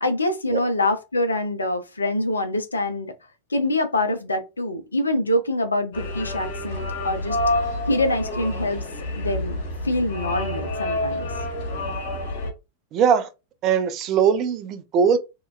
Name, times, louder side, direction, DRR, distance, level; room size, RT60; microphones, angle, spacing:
voice 1, 0.0-3.1 3.5-7.4 7.9-8.8 9.2-9.5 9.8-11.3, left 1 dB, 75° left, 0.5 m, -25 dB
sound 1, 5.9-12.5, left 1 dB, 55° left, 1.1 m, -28 dB
voice 2, 12.9-13.3 13.6-15.2, right 7 dB, 35° right, 0.4 m, -20 dB
2.8 x 2.2 x 2.4 m
figure-of-eight pair, 90°, 0 cm